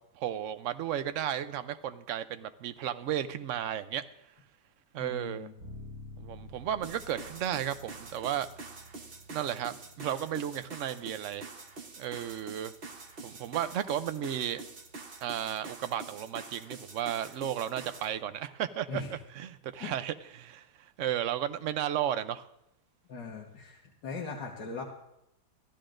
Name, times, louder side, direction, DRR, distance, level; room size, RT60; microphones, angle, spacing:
voice 1, 0.2-4.0 4.9-5.5 6.2-8.5 9.3-11.5 12.0-12.7 13.2-14.6 15.2-19.0 19.3-22.5, right 10 dB, 60° right, 11 dB, 0.8 m, -34 dB
voice 2, 5.0-5.5 18.9-19.1 19.8-19.9 23.1-24.8, left 4 dB, 90° left, -2 dB, 2.0 m, -39 dB
Bass guitar, 5.6-15.4, equal, 75° right, 7.8 m, -52 dB
sound 1, 6.8-18.1, right 3 dB, 35° right, 1.2 m, -46 dB
25.5 x 13.5 x 2.6 m, 0.82 s
omnidirectional pair, 1.8 m